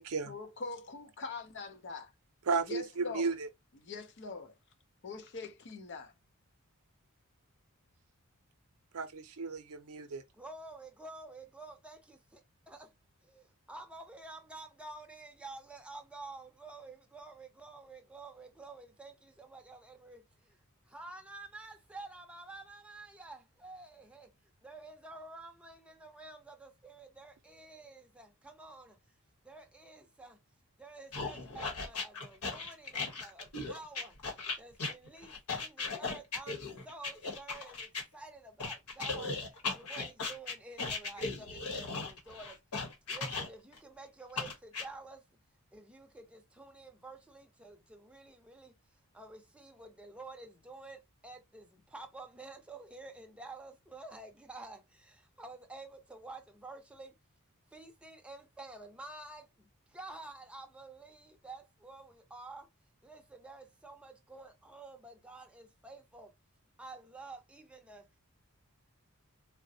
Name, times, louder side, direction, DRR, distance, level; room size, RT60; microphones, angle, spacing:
voice 1, 0.3-2.1 2.7-3.3 3.8-4.5 5.0-6.1, left 4 dB, 55° left, 0.6 m, -43 dB
voice 2, 2.5-3.5 8.9-10.2, right 4 dB, 70° right, 0.6 m, -34 dB
voice 3, 10.3-12.9 13.2-20.6 20.9-24.3 24.6-29.0 29.4-30.4 30.8-42.6 43.1-45.2 45.7-48.8 49.1-57.2 57.7-62.7 63.0-66.3 66.8-68.1, right 2 dB, 5° right, 0.6 m, -50 dB
sound 1, 31.1-38.0 38.6-43.8 44.4-44.9, left 3 dB, 75° left, 1.0 m, -37 dB
3.8 x 2.1 x 2.7 m
head